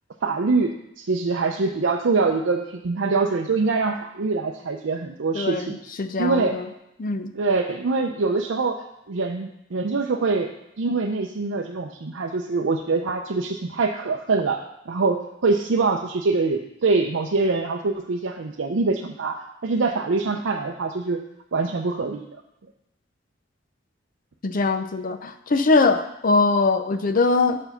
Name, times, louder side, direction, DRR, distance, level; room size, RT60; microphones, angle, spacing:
voice 1, 0.2-5.8 6.2-6.6 7.3-10.5 10.8-21.2 21.5-22.3, right 3 dB, 80° right, 1 dB, 0.6 m, -24 dB
voice 2, 5.3-6.6 7.0-7.3 24.4-27.6, left 3 dB, 45° left, 9 dB, 0.6 m, -22 dB
7.0 x 5.4 x 5.7 m, 0.82 s
head